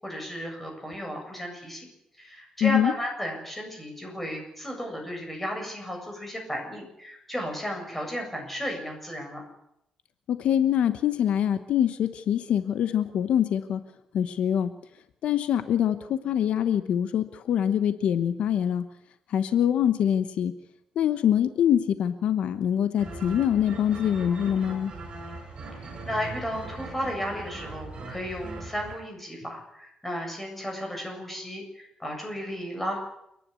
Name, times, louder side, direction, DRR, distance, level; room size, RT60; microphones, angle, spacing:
voice 1, 0.0-1.9 2.2-9.4 25.8-33.0, equal, 10° left, 1 dB, 7.7 m, -34 dB
voice 2, 2.6-2.9 10.3-13.8 14.1-14.7 15.2-18.8 19.3-20.5 20.9-24.9, left 9 dB, 80° left, 11 dB, 1.0 m, -24 dB
sound 1, 23.0-29.0, right 2 dB, 50° right, 6.1 m, -40 dB
29.5 x 11.0 x 8.4 m, 0.79 s
cardioid pair, 115°, 2 cm